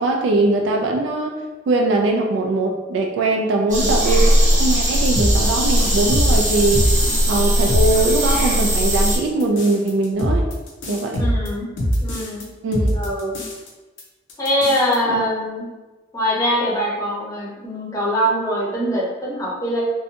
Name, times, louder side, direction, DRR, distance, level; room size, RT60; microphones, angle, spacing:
voice 1, 0.0-1.4 1.7-6.9 7.3-10.5 10.9-11.2 12.6-12.9 15.1-15.2, right 2 dB, 70° right, 1 dB, 0.3 m, -21 dB
sound 1, 3.7-9.2, equal, 40° right, 0.8 m, -18 dB
sound 2, 5.1-7.4 7.7-8.5 8.8-12.4 12.7-13.7 14.0-14.1 14.3-15.0, equal, 90° left, 0.5 m, -23 dB
voice 2, 11.2-11.7 12.0-12.4 12.9-13.3 14.4-15.6 16.1-19.8, equal, 20° left, -5 dB, 0.6 m, -23 dB
2.6 x 2.1 x 2.7 m, 1.2 s
head